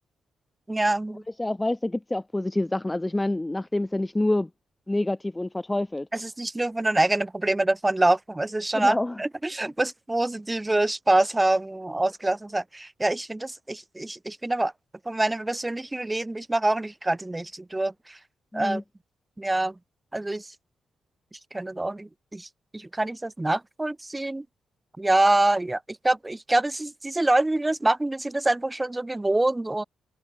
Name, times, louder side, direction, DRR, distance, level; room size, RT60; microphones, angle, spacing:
voice 1, 0.7-1.2 6.1-14.7 15.0-18.2 18.5-18.8 19.4-19.7 20.1-20.5 21.5-22.5 22.7-24.4 25.0-29.8, right 2 dB, 10° right, 1.4 m, -25 dB
voice 2, 1.4-4.5 4.9-6.1 8.7-9.2 9.6-9.7 18.5-18.8, left 1 dB, 10° left, 0.6 m, -27 dB
wide cardioid pair, 155°, 0 cm